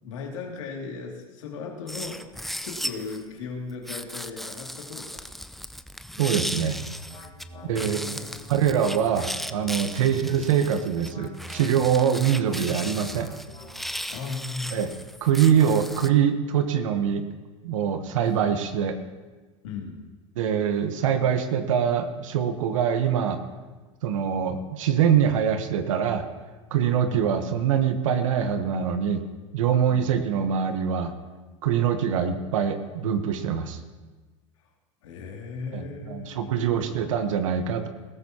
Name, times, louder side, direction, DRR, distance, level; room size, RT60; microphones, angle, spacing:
voice 1, 0.0-2.2 2.6-5.3 7.5-8.8 10.0-10.3 14.1-14.9 19.6-20.0 27.1-27.3 29.9-30.1 35.0-37.0, left 4 dB, 80° left, 0 dB, 2.6 m, -37 dB
sound 1, 1.9-3.2 3.9-7.4 7.7-16.1, equal, ahead, 0.5 m, -36 dB
sound 2, 6.1-14.2, left 1 dB, 35° left, 4.1 m, -47 dB
voice 2, 6.2-6.8 7.7-8.2 8.5-13.3 14.7-14.9 15.2-17.2 17.6-19.0 20.4-23.4 24.0-26.2 26.7-29.2 29.5-31.1 31.6-33.8 35.7-37.9, right 8 dB, 80° right, 8 dB, 1.2 m, -24 dB
20.5 x 13.5 x 2.9 m, 1.3 s
hypercardioid pair, 95°, 16 cm